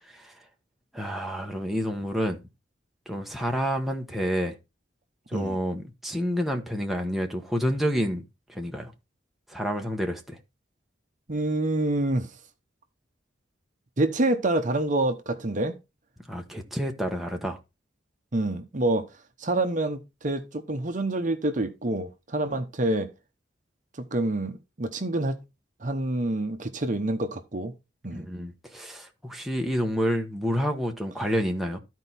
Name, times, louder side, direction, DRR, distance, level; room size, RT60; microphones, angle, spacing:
voice 1, 0.1-0.4 0.9-2.4 3.1-4.6 5.3-8.9 9.5-10.4 16.3-17.6 28.1-31.8, equal, ahead, 1.1 m, -29 dB
voice 2, 11.3-12.3 14.0-15.7 18.3-19.1 19.4-23.1 24.0-25.4 25.8-27.7 28.0-28.3, right 2 dB, 45° right, 0.9 m, -27 dB
13.0 x 4.5 x 4.1 m
head